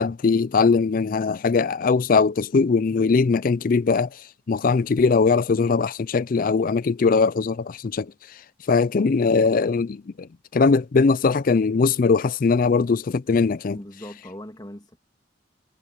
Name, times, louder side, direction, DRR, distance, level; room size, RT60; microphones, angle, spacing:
voice 1, 0.0-8.1 8.7-13.8, left 4 dB, 45° left, 0.4 m, -21 dB
voice 2, 13.7-15.0, left 1 dB, 20° left, 2.6 m, -39 dB
head